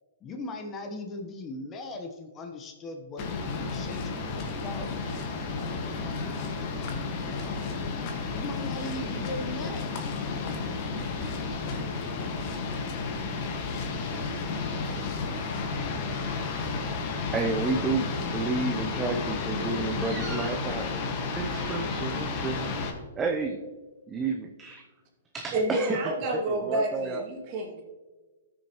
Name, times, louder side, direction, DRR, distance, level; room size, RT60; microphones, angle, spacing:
voice 1, 0.2-4.9 8.3-10.0, left 2 dB, 25° left, 4 dB, 1.0 m, -39 dB
sound 1, 3.2-22.9, left 4 dB, 40° left, 1.6 m, -32 dB
voice 2, 17.3-20.9 21.4-22.8 23.2-23.6 24.1-24.8 25.3-26.0 26.5-27.2, right 4 dB, 15° right, 3 dB, 0.6 m, -31 dB
voice 3, 25.5-27.8, right 1 dB, 40° right, -1 dB, 2.3 m, -29 dB
14.0 x 6.4 x 3.0 m, 1.3 s
hypercardioid pair, 130°, 0 cm